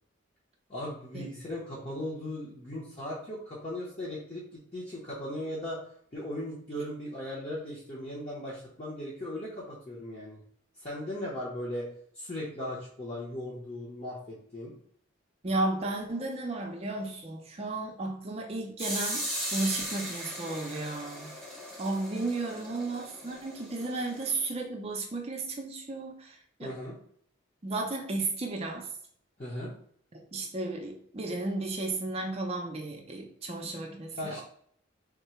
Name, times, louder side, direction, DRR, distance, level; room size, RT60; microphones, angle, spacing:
voice 1, 0.7-5.8 6.1-10.4 10.8-11.9 12.1-14.7 26.6-27.0 29.4-29.7 34.1-34.4, left 1 dB, 35° left, -7 dB, 0.8 m, -38 dB
voice 2, 15.4-19.2 19.5-21.3 21.8-26.7 27.6-28.9 30.1-34.4, right 2 dB, 30° right, 2 dB, 0.5 m, -34 dB
sound 1, 18.8-24.4, equal, ahead, 0.8 m, -38 dB
3.6 x 2.2 x 4.3 m, 0.63 s
head